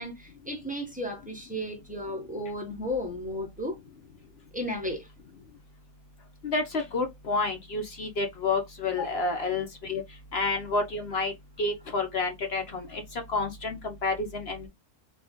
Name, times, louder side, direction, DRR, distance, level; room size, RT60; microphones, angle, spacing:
voice 1, 0.0-3.8 4.5-5.1 8.9-9.3, left 1 dB, 5° right, 1.3 m, -34 dB
voice 2, 6.4-10.0 10.3-11.3 11.6-14.7, left 3 dB, 55° left, 1.1 m, -29 dB
4.1 x 3.2 x 3.6 m
omnidirectional pair, 1.4 m